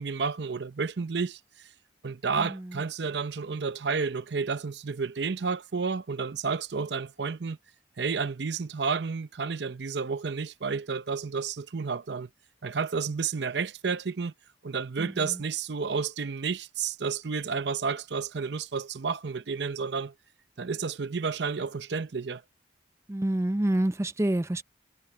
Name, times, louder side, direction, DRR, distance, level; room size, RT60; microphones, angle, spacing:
voice 1, 0.0-1.4 2.0-7.6 8.0-12.3 12.6-14.3 14.6-20.1 20.6-22.4, right 5 dB, 75° right, 0.6 m, -31 dB
voice 2, 2.4-2.8 15.0-15.4 23.1-24.6, right 1 dB, 15° right, 0.5 m, -28 dB
head